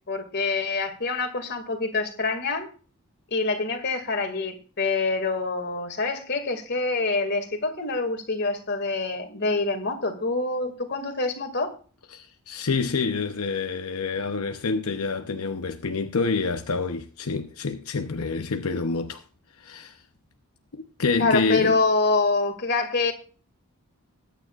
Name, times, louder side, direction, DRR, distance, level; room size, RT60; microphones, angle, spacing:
voice 1, 0.1-2.7 3.3-11.7 21.2-23.1, left 3 dB, 50° left, 2.3 m, -26 dB
voice 2, 12.1-19.2 19.6-20.0 20.7-21.8, left 4 dB, 80° left, 0.8 m, -27 dB
21.0 x 9.3 x 2.5 m
head